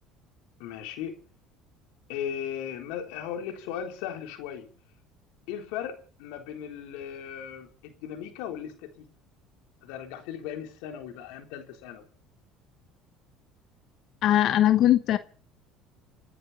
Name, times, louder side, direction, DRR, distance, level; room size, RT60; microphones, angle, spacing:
voice 1, 0.6-1.2 2.1-4.7 5.5-9.1 9.8-12.0, left 9 dB, 80° left, 3.7 m, -37 dB
voice 2, 14.2-15.2, left 12 dB, 55° left, 1.1 m, -20 dB
30.0 x 10.0 x 4.2 m
supercardioid pair, 105°, 0 cm